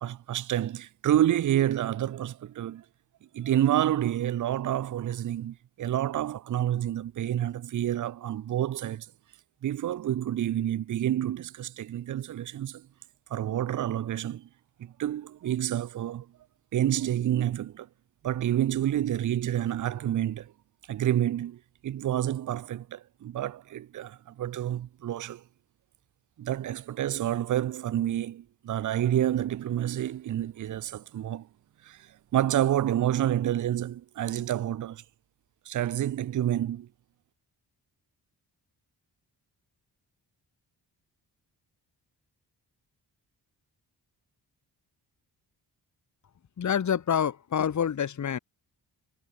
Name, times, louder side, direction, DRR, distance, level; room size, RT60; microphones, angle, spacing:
voice 1, 0.0-2.8 3.3-9.1 9.6-12.9 13.3-14.5 14.8-16.3 16.7-17.9 18.2-20.5 20.9-25.4 26.4-31.5 31.8-35.0 35.7-36.9, right 11 dB, 45° right, 0.5 m, -28 dB
voice 2, 46.6-48.4, left 8 dB, 45° left, 1.1 m, -27 dB
wide cardioid pair, 175°, 42 cm